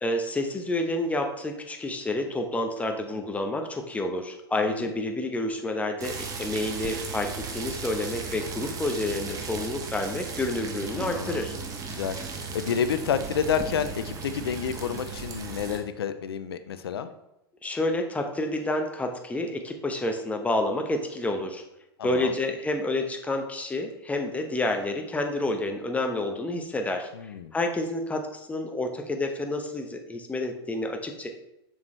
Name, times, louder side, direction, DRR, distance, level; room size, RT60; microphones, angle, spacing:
voice 1, 0.0-11.5 17.6-21.6 22.0-27.1 27.5-31.3, left 2 dB, 10° left, 4 dB, 1.0 m, -29 dB
sound 1, 6.0-15.8, right 4 dB, 25° right, 1.3 m, -36 dB
voice 2, 10.9-11.4 11.9-12.2 12.5-17.1 22.0-22.3 27.1-27.5, left 7 dB, 75° left, 11 dB, 0.6 m, -29 dB
7.1 x 6.3 x 3.3 m, 0.88 s
hypercardioid pair, 100°, 13 cm